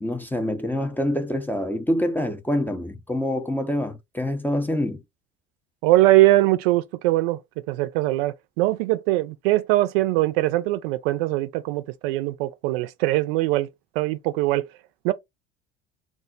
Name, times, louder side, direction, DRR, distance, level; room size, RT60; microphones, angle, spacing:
voice 1, 0.0-5.0, left 1 dB, 5° left, 0.5 m, -26 dB
voice 2, 5.8-7.4 7.7-13.7 14.0-14.7 15.0-15.1, right 17 dB, 60° right, 0.5 m, -21 dB
3.7 x 2.0 x 2.6 m
figure-of-eight pair, 65°, 35 cm